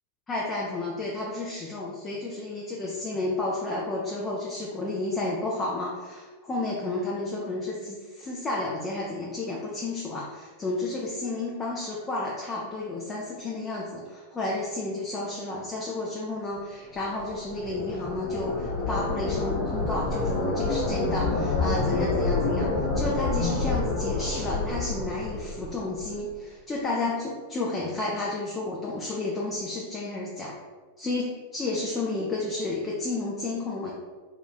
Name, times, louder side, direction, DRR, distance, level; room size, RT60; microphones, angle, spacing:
voice 1, 0.3-22.7 22.9-30.6 31.0-33.9, left 2 dB, 20° left, -4 dB, 0.6 m, -31 dB
sound 1, 17.0-26.2, left 3 dB, 50° left, 0.9 m, -28 dB
3.0 x 2.4 x 4.0 m, 1.4 s
hypercardioid pair, 95°, 0 cm